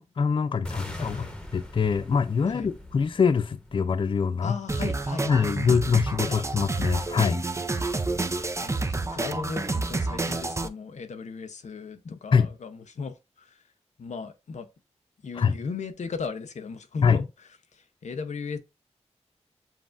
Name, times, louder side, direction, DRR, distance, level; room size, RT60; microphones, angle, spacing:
voice 1, 0.0-1.2 1.5-4.6 5.3-7.4 12.1-12.5 15.4-15.5 17.0-17.2, left 6 dB, 45° left, 0.3 m, -24 dB
sound 1, 0.6-4.7, left 1 dB, 5° left, 0.9 m, -42 dB
voice 2, 0.9-1.3 2.5-2.7 4.4-5.8 6.2-6.4 7.7-7.8 8.6-13.6 14.0-14.7 15.2-17.2 17.7-18.6, left 5 dB, 90° left, 0.6 m, -37 dB
sound 2, 4.7-10.7, right 3 dB, 25° right, 0.4 m, -29 dB
7.1 x 2.5 x 2.4 m
wide cardioid pair, 85°, 12 cm